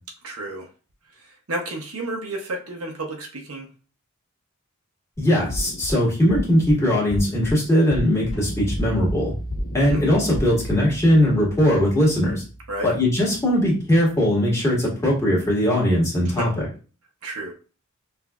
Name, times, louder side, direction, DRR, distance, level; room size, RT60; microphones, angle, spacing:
voice 1, 0.2-0.7 1.2-3.7 9.8-10.1 12.7-12.9 16.2-16.5 17.2-17.5, right 2 dB, 75° right, 1 dB, 0.8 m, -32 dB
voice 2, 5.2-9.3 9.7-12.4 12.8-16.6, left 1 dB, 15° left, -5 dB, 1.6 m, -20 dB
sound 1, 5.5-5.9 6.3-6.7 7.1-7.5 7.9-8.3 8.7-9.1 9.5-9.9 10.3-10.7, left 1 dB, 40° left, 0.4 m, -31 dB
sound 2, 8.3-14.3, right 1 dB, 70° left, 1.2 m, -36 dB
5.7 x 2.5 x 2.3 m, 0.35 s
head